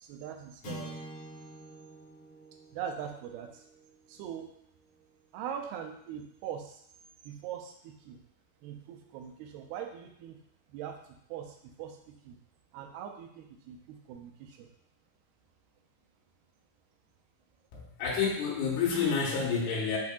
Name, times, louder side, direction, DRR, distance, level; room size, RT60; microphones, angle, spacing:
voice 1, 0.0-1.0 2.7-3.7 4.1-4.5 5.3-6.8 7.2-8.2 8.6-10.4 10.7-12.4 12.7-14.7, right 9 dB, 90° right, 4 dB, 2.5 m, -42 dB
sound 1, 0.6-5.1, equal, 55° left, 2.9 m, -47 dB
voice 2, 17.7-20.0, left 5 dB, 90° left, -4 dB, 3.0 m, -29 dB
8.0 x 2.8 x 2.4 m, 0.69 s
omnidirectional pair, 4.4 m